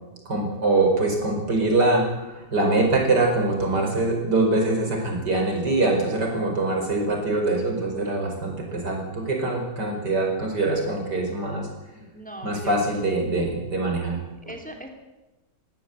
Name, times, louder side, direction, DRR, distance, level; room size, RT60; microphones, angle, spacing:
voice 1, 0.3-11.7 12.4-14.5, right 2 dB, 80° right, 2 dB, 5.5 m, -23 dB
voice 2, 12.1-12.7 14.4-14.9, right 1 dB, 5° left, 4 dB, 2.7 m, -39 dB
21.5 x 16.0 x 8.2 m, 1.1 s
omnidirectional pair, 1.8 m